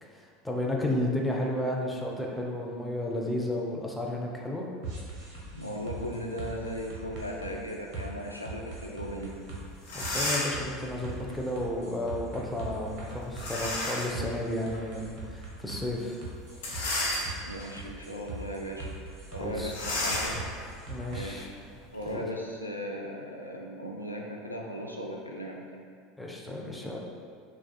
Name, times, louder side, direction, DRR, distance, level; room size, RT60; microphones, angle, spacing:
voice 1, 0.0-4.7 9.9-16.2 19.3-20.2 20.9-21.5 22.1-22.2 26.2-27.0, left 1 dB, 5° left, -2 dB, 0.5 m, -33 dB
sound 1, 4.8-21.3, right 3 dB, 45° right, 0.8 m, -42 dB
voice 2, 5.5-9.3 17.4-18.9 19.3-20.4 21.1-21.5 21.9-25.8, equal, 90° left, -1 dB, 0.3 m, -37 dB
sound 2, 9.4-9.5 9.8-10.7 13.3-14.2 14.7-14.8 16.5-17.6 18.2-18.4 18.7-18.8 19.7-22.1, left 1 dB, 65° left, 1.1 m, -32 dB
6.0 x 2.4 x 2.3 m, 2.2 s
figure-of-eight pair, 75°, 0 cm